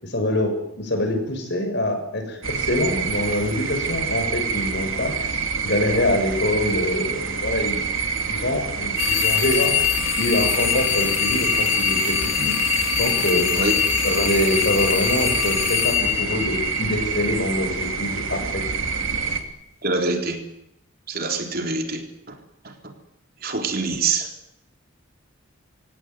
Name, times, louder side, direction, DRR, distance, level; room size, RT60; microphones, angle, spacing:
voice 1, 0.0-7.8 8.3-9.8 10.2-12.6 13.0-13.5 14.0-18.6, left 1 dB, 55° left, 6 dB, 6.9 m, -25 dB
sound 1, 2.4-19.4, right 5 dB, 75° right, 3.3 m, -27 dB
sound 2, 9.0-17.2, left 12 dB, 85° left, 2.1 m, -23 dB
voice 2, 19.8-20.4 21.1-22.3 23.4-24.3, right 3 dB, 45° right, 4 dB, 3.9 m, -25 dB
26.5 x 17.5 x 9.5 m, 0.80 s
head